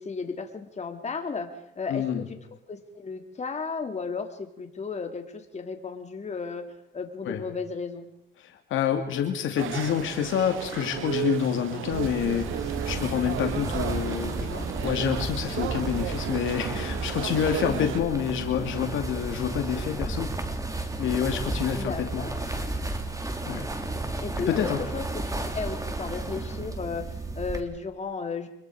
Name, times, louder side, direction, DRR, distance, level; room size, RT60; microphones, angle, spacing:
voice 1, 0.0-2.2 2.7-6.7 6.9-8.1 14.3-14.7 17.7-17.9 21.7-22.3 24.2-25.0 25.4-28.5, left 4 dB, 35° left, 5 dB, 3.1 m, -34 dB
voice 2, 1.9-2.2 7.2-7.4 8.4-14.5 14.8-20.3 21.0-22.2 22.5-22.7 23.4-23.7 24.5-24.8, left 9 dB, 80° left, 5 dB, 2.6 m, -28 dB
sound 1, 9.6-18.0, right 12 dB, 90° right, 1.2 m, -34 dB
sound 2, 11.9-27.6, right 2 dB, 15° right, 3.0 m, -33 dB
25.5 x 22.0 x 5.0 m, 0.79 s
cardioid pair, 90°, 20 cm